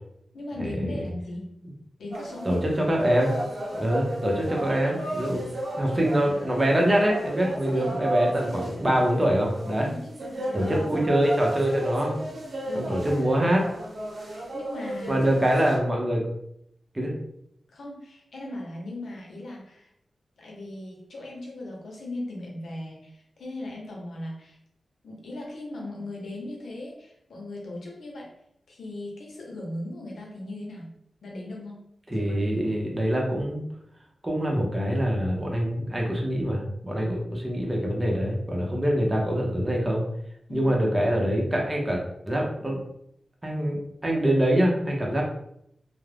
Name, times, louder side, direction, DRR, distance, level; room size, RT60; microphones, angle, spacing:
voice 1, 0.3-1.6 2.0-2.7 4.7-5.0 7.7-8.0 8.5-8.7 9.8-10.8 12.7-13.0 14.2-15.2 17.7-19.9 20.4-24.6 25.0-28.3 28.7-30.9 31.2-31.8 32.7-32.8 40.5-40.8, left 1 dB, 85° left, -2 dB, 0.7 m, -38 dB
sound 1, 2.1-15.8, right 1 dB, 60° right, 0.7 m, -34 dB
voice 2, 2.4-3.3 3.7-5.4 5.7-9.9 10.5-12.2 12.8-13.6 15.1-16.2 16.9-17.1 32.1-33.6 34.2-40.0 40.5-42.8 43.4-45.2, equal, 20° right, -1 dB, 0.6 m, -24 dB
2.4 x 2.0 x 3.2 m, 0.75 s
wide cardioid pair, 100°, 0 cm